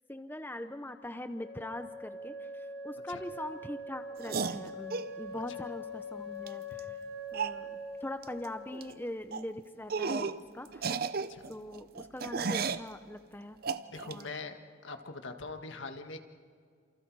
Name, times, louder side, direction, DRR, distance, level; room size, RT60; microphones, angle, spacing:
voice 1, 0.1-7.0 7.3-11.1 11.5-13.6 14.0-14.3, left 1 dB, 10° left, 8 dB, 0.7 m, -42 dB
Wind instrument woodwind instrument, 1.4-9.1, left 1 dB, 50° left, 4.0 m, -43 dB
sound 1, 4.2-5.1 6.5-6.6 6.8-6.9 7.3-7.6 8.2-8.5 8.7-8.9 9.3-9.5 9.9-10.4 10.7-12.9 13.6-14.2, right 5 dB, 50° right, 0.6 m, -34 dB
voice 2, 13.9-14.6 14.8-16.2, left 3 dB, 80° left, 6 dB, 1.7 m, -42 dB
29.5 x 27.5 x 4.8 m, 2.1 s
head